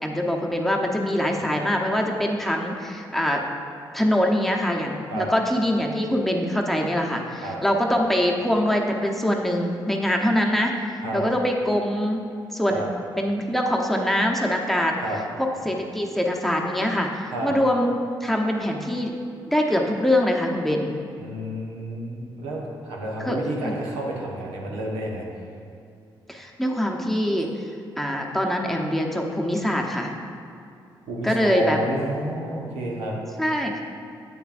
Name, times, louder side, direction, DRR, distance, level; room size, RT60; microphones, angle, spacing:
voice 1, 0.0-3.4 3.9-10.7 11.1-12.2 12.5-12.8 13.2-15.0 15.4-19.2 19.5-20.9 23.2-23.4 23.6-23.7 26.3-27.5 28.0-30.2 31.2-31.8 33.4-33.8, equal, ahead, 0 dB, 0.9 m, -23 dB
voice 2, 21.2-25.2 31.1-33.1, right 1 dB, 80° right, -3 dB, 1.1 m, -30 dB
8.6 x 6.7 x 2.6 m, 2.5 s
hypercardioid pair, 45°, 10 cm